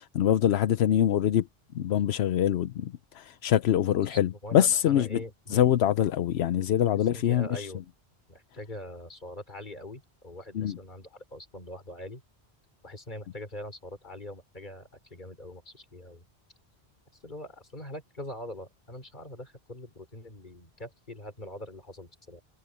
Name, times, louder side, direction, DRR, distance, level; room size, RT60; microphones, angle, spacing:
voice 1, 0.0-1.5 1.7-5.2 5.5-7.7 10.5-10.8, left 10 dB, 85° left, 0.9 m, -24 dB
voice 2, 3.9-5.7 6.9-7.8 8.3-12.2 12.8-16.2 17.2-22.4, left 1 dB, 50° left, 3.6 m, -43 dB
omnidirectional pair, 1.1 m